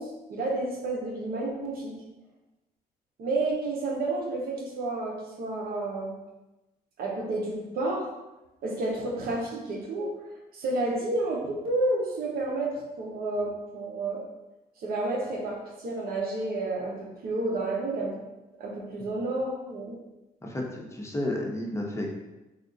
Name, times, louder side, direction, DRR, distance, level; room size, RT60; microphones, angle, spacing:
voice 1, 0.0-1.9 3.2-6.1 7.0-8.1 8.6-10.1 10.5-14.2 14.8-18.1 18.6-20.0, right 2 dB, 65° right, -1 dB, 0.9 m, -30 dB
voice 2, 20.4-22.1, left 1 dB, 15° left, -2 dB, 0.9 m, -32 dB
3.4 x 2.4 x 3.9 m, 1.0 s
cardioid pair, 85°, 17 cm